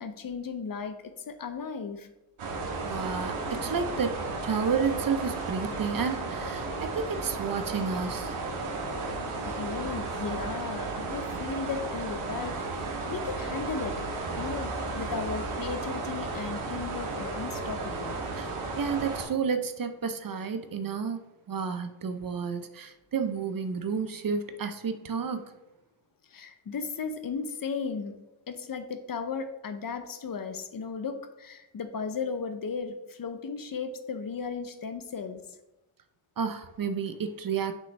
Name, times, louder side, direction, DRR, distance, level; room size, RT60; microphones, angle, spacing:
voice 1, 0.0-2.1 9.4-14.0 14.4-18.2 26.3-28.1 28.5-35.4, left 5 dB, 45° left, 8 dB, 0.7 m, -35 dB
sound 1, 2.4-19.2, right 3 dB, 85° right, 1.4 m, -34 dB
voice 2, 2.8-4.2 4.4-8.4 18.3-21.2 21.5-25.4 36.4-37.7, right 5 dB, 45° right, 9 dB, 0.6 m, -31 dB
6.4 x 5.3 x 3.2 m, 0.97 s
cardioid pair, 105°, 49 cm